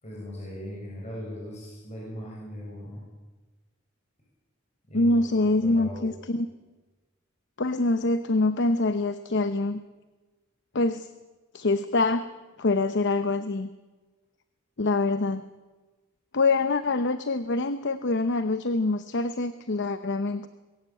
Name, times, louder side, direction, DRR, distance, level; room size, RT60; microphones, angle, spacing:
voice 1, 0.0-3.0 4.9-6.1, equal, 35° left, -4 dB, 6.6 m, -39 dB
voice 2, 4.9-6.5 7.6-9.8 10.7-11.1 11.5-12.3 12.6-13.7 14.8-15.4 16.3-20.5, left 2 dB, 60° left, 11 dB, 0.8 m, -25 dB
21.5 x 17.0 x 8.5 m, 1.2 s
head